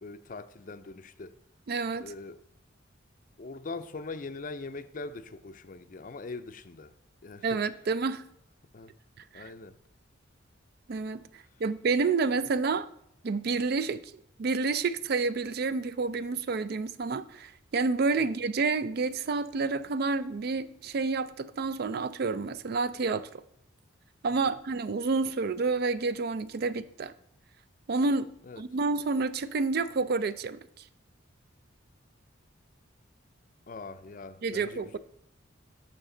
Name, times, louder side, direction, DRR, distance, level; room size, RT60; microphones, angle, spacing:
voice 1, 0.0-1.4 2.0-2.4 3.4-6.9 7.2-7.6 8.7-8.9 9.3-9.8 18.2-18.3 24.5-24.6 28.4-28.6 33.7-35.0, left 3 dB, 40° left, 0.5 m, -42 dB
voice 2, 1.7-2.1 7.4-8.2 9.3-9.4 10.9-12.9 13.2-14.1 14.4-23.3 24.2-27.1 27.9-28.3 28.6-30.6 34.4-35.0, right 4 dB, 50° right, 0.4 m, -29 dB
13.5 x 5.0 x 3.8 m
head